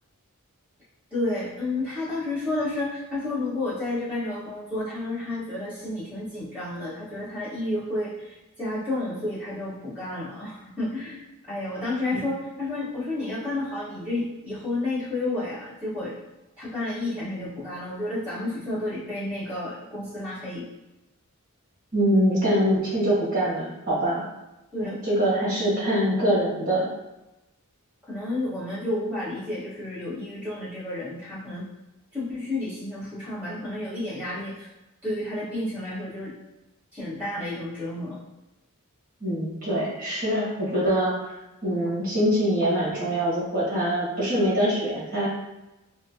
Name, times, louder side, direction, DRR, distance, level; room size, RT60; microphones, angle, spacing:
voice 1, 1.1-11.2 11.5-16.1 16.6-20.6 24.7-25.0 28.1-31.6 32.1-34.7 35.0-36.3 36.9-38.2, left 2 dB, 5° right, -12 dB, 1.4 m, -31 dB
voice 2, 21.9-24.2 24.8-26.9 39.2-41.3 41.6-45.3, equal, 40° right, -7 dB, 1.4 m, -24 dB
4.2 x 2.2 x 2.8 m, 1.0 s
head